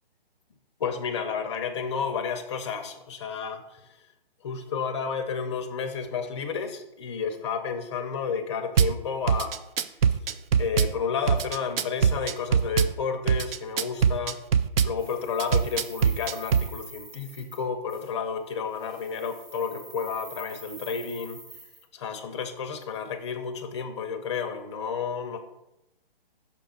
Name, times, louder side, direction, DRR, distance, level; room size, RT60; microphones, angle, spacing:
voice 1, 0.8-4.0 4.4-9.6 10.6-14.4 14.8-21.4 21.9-25.4, left 6 dB, 30° left, 8 dB, 0.5 m, -31 dB
Drum kit / Bass drum, 8.8-8.9 9.3-10.9 11.3-12.9 13.3-14.9 15.4-16.7, right 7 dB, 75° right, 0.5 m, -22 dB
sound 1, 15.0-17.6 17.9-18.1 18.7-21.8, right 1 dB, 10° right, 1.5 m, -47 dB
5.9 x 3.4 x 5.3 m, 0.90 s
hypercardioid pair, 145°, 30 cm